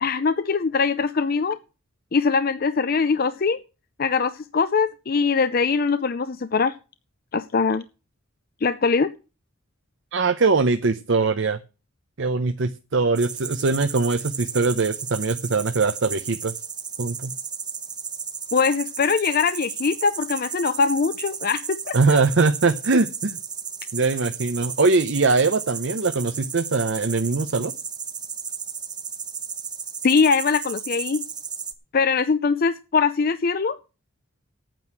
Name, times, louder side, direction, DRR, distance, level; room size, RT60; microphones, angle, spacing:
voice 1, 0.0-1.6 2.1-3.6 4.0-6.7 7.3-7.8 8.6-9.1 18.5-22.2 30.0-31.2 31.9-33.8, left 5 dB, 45° left, 12 dB, 0.5 m, -22 dB
voice 2, 10.1-11.6 12.2-16.5 17.0-17.3 21.9-23.4 23.9-27.7, right 3 dB, 60° right, 9 dB, 0.7 m, -22 dB
sound 1, 13.2-31.7, right 6 dB, 20° right, 0.9 m, -34 dB
9.2 x 7.8 x 7.5 m, 0.32 s
head